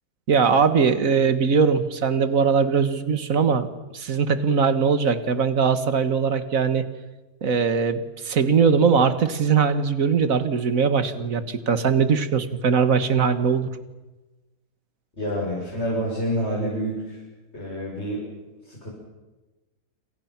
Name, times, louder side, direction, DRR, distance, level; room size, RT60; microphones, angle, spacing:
voice 1, 0.3-3.7 3.9-6.9 7.4-13.7, right 6 dB, 55° right, 11 dB, 1.9 m, -21 dB
voice 2, 15.2-17.2 17.5-18.3 18.6-18.9, equal, 40° left, -4 dB, 7.5 m, -28 dB
28.0 x 27.5 x 6.0 m, 1.1 s
omnidirectional pair, 1.7 m